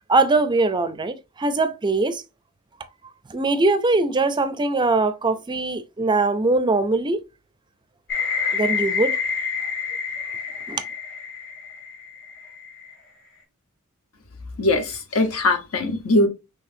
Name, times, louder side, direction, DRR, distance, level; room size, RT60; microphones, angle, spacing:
voice 1, 0.1-2.2 3.3-7.2 8.5-9.2 10.7-10.8, right 3 dB, 20° right, 0.4 m, -21 dB
sound 1, 8.1-12.9, left 6 dB, 60° left, 2.7 m, -28 dB
voice 2, 14.6-16.3, left 2 dB, 75° left, 1.2 m, -21 dB
6.1 x 3.2 x 2.6 m
head